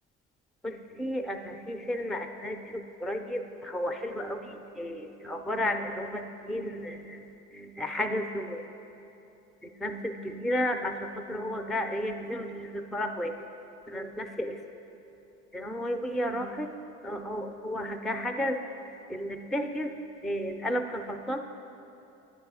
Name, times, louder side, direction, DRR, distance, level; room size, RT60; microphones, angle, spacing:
voice 1, 0.6-8.6 9.6-13.5 13.9-14.6 15.5-16.7 17.0-18.6 18.9-21.4, equal, ahead, 6 dB, 0.4 m, -33 dB
9.7 x 4.8 x 6.1 m, 2.9 s
supercardioid pair, 90°, 31 cm